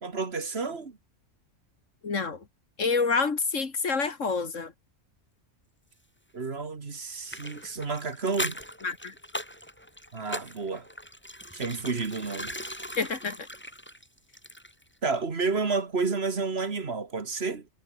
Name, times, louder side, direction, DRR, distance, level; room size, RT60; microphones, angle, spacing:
voice 1, 0.0-1.0 6.3-8.6 10.1-10.9 11.5-12.6 15.0-17.7, right 4 dB, 55° right, 2.1 m, -30 dB
voice 2, 2.0-2.5 2.8-4.7 8.8-9.2 13.0-13.5, left 4 dB, 80° left, 2.6 m, -28 dB
sound 1, 7.3-14.9 15.1-15.2, equal, 10° left, 6.3 m, -39 dB
omnidirectional pair, 1.3 m